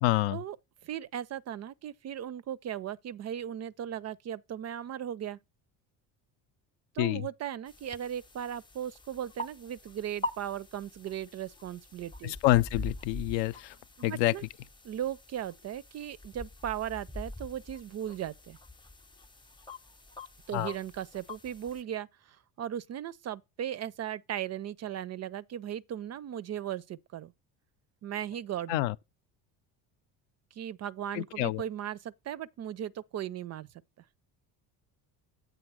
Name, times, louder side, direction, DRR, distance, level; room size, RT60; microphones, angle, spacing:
voice 1, 0.0-0.4 7.0-7.3 12.2-13.8 14.0-14.4 20.5-20.7 28.7-28.9 31.1-31.6, left 16 dB, 70° left, 0.5 m, -27 dB
voice 2, 0.8-5.4 6.9-12.3 14.0-14.5 14.8-18.6 20.5-27.3 28.0-28.8 30.5-33.7, right 10 dB, 35° right, 0.4 m, -37 dB
sound 1, 7.7-21.8, left 1 dB, 10° left, 0.6 m, -44 dB
7.9 x 3.8 x 6.1 m
supercardioid pair, 75°, 47 cm